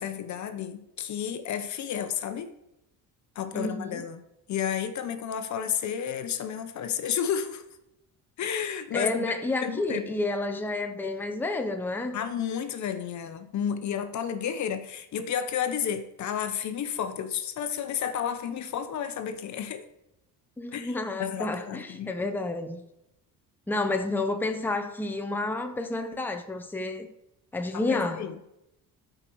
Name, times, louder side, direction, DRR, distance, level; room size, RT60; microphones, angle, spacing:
voice 1, 0.0-2.5 3.4-4.2 4.5-7.6 8.4-9.3 9.6-10.0 12.1-19.9 20.7-22.3 27.7-28.4, left 8 dB, 55° left, 0.9 m, -31 dB
voice 2, 3.5-4.0 8.9-12.2 20.6-22.8 23.7-27.1 27.5-28.3, left 2 dB, 5° left, 0.8 m, -30 dB
12.0 x 5.0 x 4.6 m
cardioid pair, 110°, 35 cm